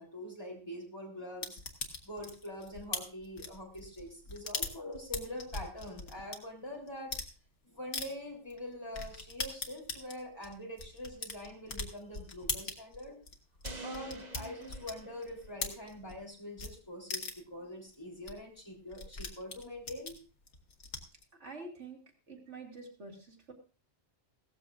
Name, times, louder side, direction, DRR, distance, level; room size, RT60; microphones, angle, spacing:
voice 1, 0.0-1.6 2.0-7.1 7.6-13.2 13.8-20.2, left 1 dB, 20° left, -2 dB, 3.8 m, -44 dB
sound 1, 1.4-6.4 6.9-7.3 7.9-8.1 8.5-8.6 8.9-16.2 16.6-16.7 17.1-17.5 17.9-18.0 18.3-18.4 18.6-21.2, left 3 dB, 80° left, 1.8 m, -40 dB
sound 2, 13.6-15.9, right 2 dB, 40° right, 1.4 m, -47 dB
voice 2, 21.4-22.0 22.3-23.5, right 3 dB, 85° right, 0 dB, 2.8 m, -47 dB
16.5 x 14.0 x 2.5 m, 0.36 s
omnidirectional pair, 1.2 m